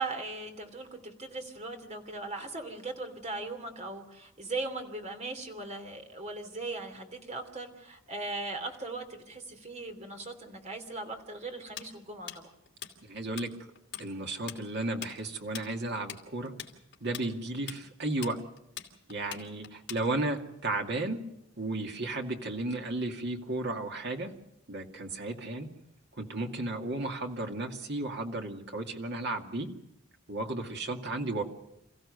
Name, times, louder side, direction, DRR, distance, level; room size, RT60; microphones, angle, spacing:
voice 1, 0.0-12.5, right 3 dB, 35° right, 5 dB, 3.0 m, -39 dB
Tools, 11.8-13.5 13.8-14.1 14.3-20.4, left 10 dB, 55° left, 2.7 m, -42 dB
voice 2, 13.1-13.5 14.0-16.5 17.0-18.4 19.1-21.2 21.6-24.3 24.7-25.7 26.2-29.7 30.3-31.4, right 2 dB, 55° right, 3 dB, 2.3 m, -34 dB
28.0 x 15.5 x 6.7 m, 0.86 s
head